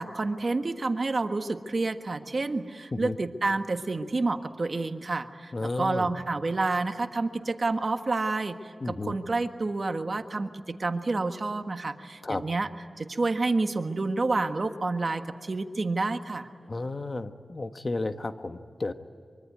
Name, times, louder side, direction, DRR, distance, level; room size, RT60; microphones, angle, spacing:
voice 1, 0.0-12.7 13.0-16.5, right 3 dB, 50° right, 7 dB, 1.5 m, -29 dB
voice 2, 5.5-6.1 8.8-9.1 12.2-12.4 16.7-18.9, left 2 dB, 45° left, 8 dB, 1.3 m, -32 dB
24.5 x 24.5 x 9.5 m, 2.3 s
wide cardioid pair, 65°, 0 cm